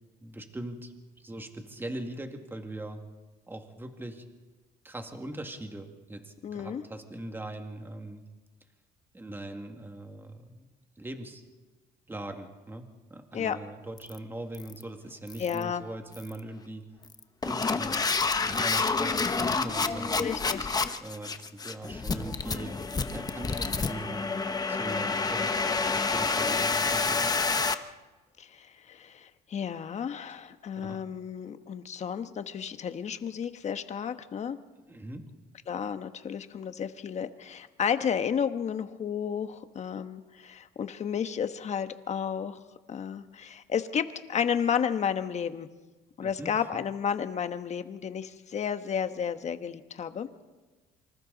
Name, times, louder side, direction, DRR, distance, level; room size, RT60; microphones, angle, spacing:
voice 1, 0.2-0.9 1.2-3.0 3.5-4.3 4.8-8.2 9.1-10.7 11.0-11.4 12.1-16.8 17.4-20.3 21.0-22.8 23.1-24.3 24.7-27.4 30.8-31.0 34.9-35.3 46.2-46.7, right 1 dB, 10° right, 4 dB, 2.2 m, -41 dB
voice 2, 6.4-6.8 13.3-13.6 15.4-15.8 20.2-20.8 28.4-34.6 35.7-42.6 42.9-45.7 46.2-50.3, left 7 dB, 40° left, 9 dB, 1.3 m, -32 dB
sound 1, 14.0-14.2 14.5-14.8 15.3-15.6 16.1-16.4 17.0-27.7, left 4 dB, 20° left, 1.0 m, -28 dB
27.0 x 25.5 x 4.1 m, 1.2 s
cardioid pair, 110°, 17 cm